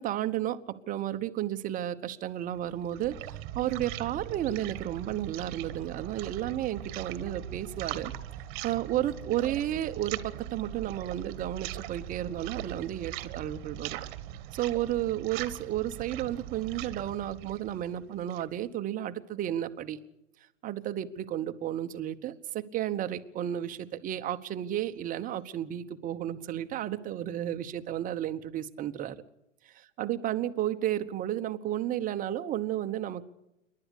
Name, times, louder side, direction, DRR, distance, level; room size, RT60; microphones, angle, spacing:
voice 1, 0.0-8.1 8.6-14.0 14.5-20.0 20.6-29.2 29.6-33.2, right 12 dB, 20° right, 9 dB, 1.1 m, -32 dB
sound 1, 2.5-18.6, right 13 dB, 40° right, 1.5 m, -40 dB
28.0 x 11.5 x 8.4 m, 0.89 s
hypercardioid pair, 115°, 37 cm